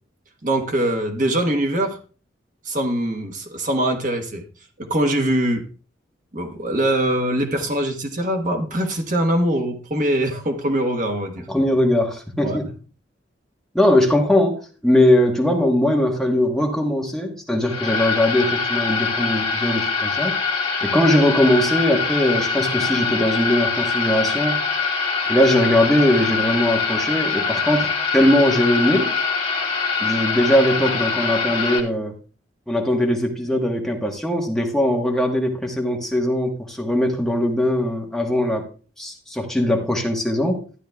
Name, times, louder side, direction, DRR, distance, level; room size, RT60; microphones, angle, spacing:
voice 1, 0.4-2.0 2.6-4.4 4.8-5.6 6.3-11.4 12.4-12.6, right 1 dB, 45° right, 1.2 m, -22 dB
voice 2, 11.5-12.7 13.7-20.4 20.8-24.7 25.3-29.1 30.0-32.1 32.7-38.7 39.0-40.6, left 1 dB, ahead, 1.2 m, -20 dB
sound 1, 17.6-31.8, left 5 dB, 30° left, 1.5 m, -23 dB
13.0 x 10.5 x 2.3 m
head